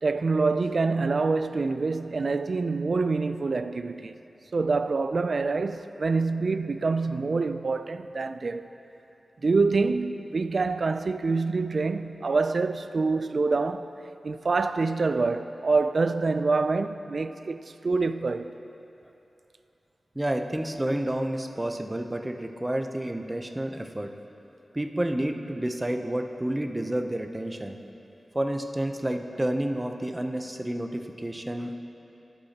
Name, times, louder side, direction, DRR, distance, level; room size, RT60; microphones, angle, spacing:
voice 1, 0.0-4.2 4.5-8.7 9.4-14.0 14.2-18.5, right 3 dB, 55° right, 0.4 m, -26 dB
voice 2, 20.1-24.1 24.7-27.8 28.3-31.7, right 1 dB, 15° right, 0.7 m, -30 dB
20.5 x 8.0 x 2.9 m
wide cardioid pair, 95°, 0 cm